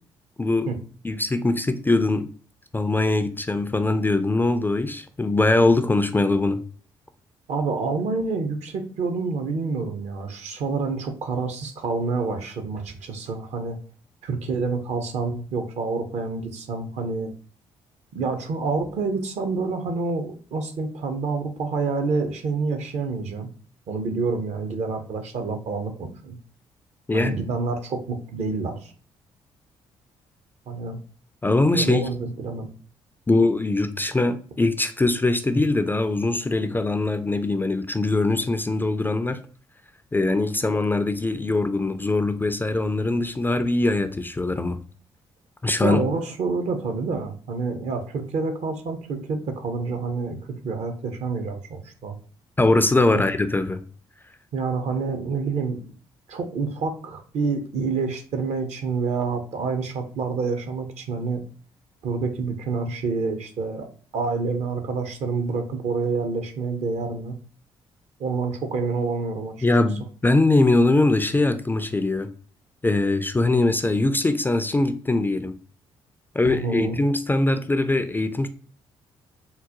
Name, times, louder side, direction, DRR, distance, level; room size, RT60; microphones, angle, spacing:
voice 1, 0.4-0.7 1.0-2.3 2.7-6.6 27.1-27.3 31.4-32.1 33.3-39.4 40.1-44.8 45.6-46.1 52.6-53.8 69.6-72.3 72.8-75.5 76.4-78.5, left 2 dB, 15° left, 0.3 m, -22 dB
voice 2, 7.5-13.8 14.2-17.3 18.1-23.5 23.9-26.4 27.1-28.9 30.7-31.0 31.7-32.7 45.8-50.4 50.6-52.2 53.1-53.2 54.5-55.8 56.3-61.4 62.0-67.4 68.2-69.5 76.4-77.0, right 4 dB, 55° right, 0.6 m, -28 dB
3.8 x 2.1 x 2.7 m
hypercardioid pair, 45°, 13 cm